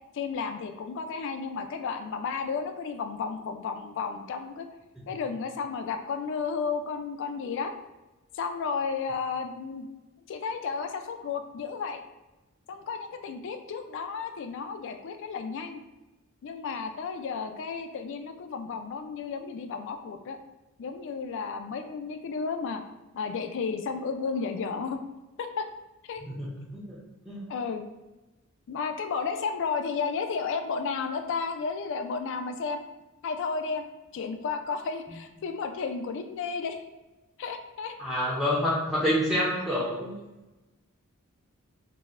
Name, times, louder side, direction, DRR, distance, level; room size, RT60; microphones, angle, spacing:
voice 1, 0.1-4.7 5.1-7.7 8.3-9.9 10.3-12.0 12.7-15.8 16.4-20.4 20.8-22.8 23.1-25.0 25.4-25.7 26.1-26.2 27.5-27.8 28.7-32.8 33.2-33.8 34.1-36.8 37.4-37.9 38.3-38.4, left 5 dB, 55° left, 7 dB, 0.3 m, -33 dB
voice 2, 26.2-27.0 27.3-27.5 38.0-40.1, equal, ahead, -7 dB, 0.5 m, -28 dB
4.0 x 2.0 x 2.4 m, 1.1 s
head